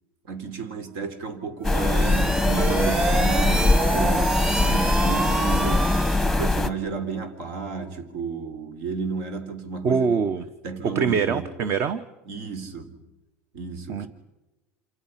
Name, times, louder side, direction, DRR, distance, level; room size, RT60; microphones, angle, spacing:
voice 1, 0.3-10.1 10.6-11.5 12.3-13.0 13.5-14.1, right 5 dB, 75° right, 4.0 m, -32 dB
sound 1, 1.6-6.7, left 2 dB, ahead, 1.0 m, -22 dB
sound 2, 1.6-6.4, right 3 dB, 20° right, 3.0 m, -27 dB
voice 2, 9.8-10.4 10.8-12.0 13.9-14.0, right 6 dB, 45° right, 1.0 m, -23 dB
28.5 x 27.5 x 5.8 m
supercardioid pair, 135°, 6 cm